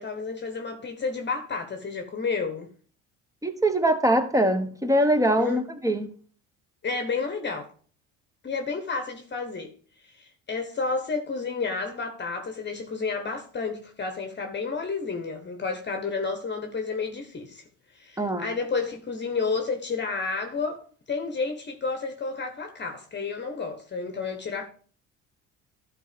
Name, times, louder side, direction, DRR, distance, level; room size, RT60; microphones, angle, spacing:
voice 1, 0.0-2.7 5.4-5.6 6.8-7.7 8.4-9.7 10.1-17.6 17.9-20.8 21.1-24.7, left 4 dB, 30° left, 1.2 m, -31 dB
voice 2, 3.4-6.1 18.2-18.5, right 1 dB, 10° right, 1.3 m, -23 dB
12.0 x 4.1 x 5.1 m
supercardioid pair, 70°, 36 cm